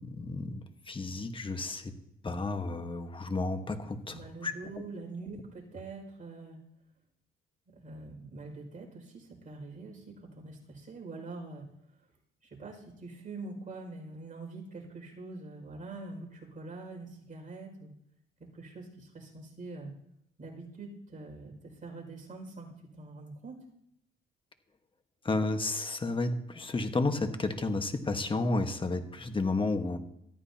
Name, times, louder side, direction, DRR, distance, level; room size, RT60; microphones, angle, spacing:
voice 1, 0.0-1.9 2.2-4.5 25.2-30.0, left 2 dB, 25° left, 7 dB, 1.4 m, -32 dB
voice 2, 4.1-6.6 7.7-11.6 12.5-17.9 18.5-19.9 20.4-23.6, right 3 dB, 40° right, 0 dB, 5.5 m, -44 dB
19.5 x 13.5 x 2.9 m, 0.78 s
cardioid pair, 90°, 20 cm